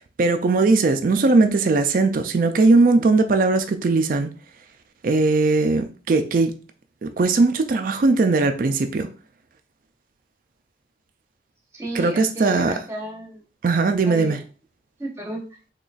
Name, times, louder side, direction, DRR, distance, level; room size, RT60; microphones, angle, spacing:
voice 1, 0.2-4.3 5.0-6.5 7.0-9.1 11.9-12.7 13.6-14.4, right 3 dB, 50° right, 0.3 m, -19 dB
voice 2, 11.7-13.4 14.0-14.4 15.0-15.4, right 1 dB, 15° right, 0.8 m, -33 dB
3.9 x 2.9 x 2.4 m
head